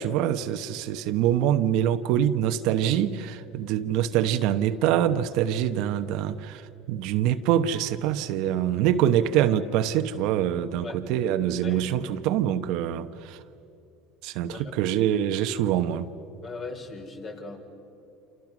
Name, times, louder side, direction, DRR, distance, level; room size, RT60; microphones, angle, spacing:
voice 1, 0.0-13.4 14.2-16.1, right 10 dB, 70° right, 1.0 m, -25 dB
voice 2, 11.6-12.0 14.5-14.8 16.4-17.6, left 3 dB, 40° left, 4.4 m, -38 dB
29.0 x 27.5 x 6.2 m
supercardioid pair, 115°, 0 cm